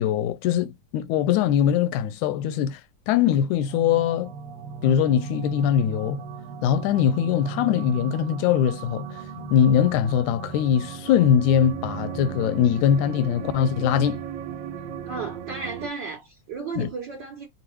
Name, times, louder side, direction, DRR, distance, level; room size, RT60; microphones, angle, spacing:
voice 1, 0.0-2.8 3.1-4.3 4.8-6.2 6.6-14.2 16.8-16.9, left 9 dB, 85° left, 2.0 m, -22 dB
sound 1, 3.7-15.9, right 6 dB, 80° right, 1.9 m, -36 dB
voice 2, 15.1-17.5, right 4 dB, 60° right, 1.1 m, -34 dB
5.2 x 2.5 x 3.0 m
omnidirectional pair, 3.4 m